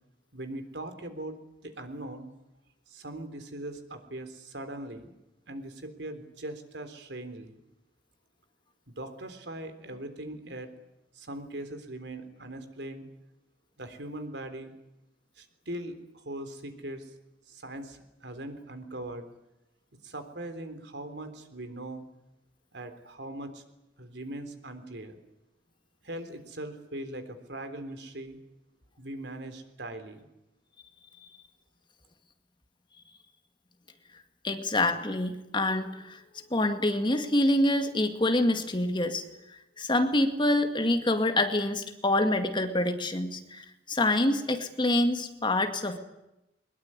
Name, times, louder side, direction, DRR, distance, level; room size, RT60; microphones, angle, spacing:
voice 1, 0.3-2.3 2.9-5.1 5.5-7.6 8.9-10.7 11.1-13.1 13.8-14.7 15.4-17.1 17.5-19.3 20.0-22.0 22.7-23.6 24.0-25.2 26.0-28.4 29.0-30.3, right 1 dB, 70° right, 9 dB, 3.6 m, -40 dB
voice 2, 34.4-36.2 36.5-39.2 39.5-46.0, left 1 dB, 25° left, 7 dB, 2.1 m, -26 dB
22.5 x 21.5 x 9.8 m, 0.90 s
head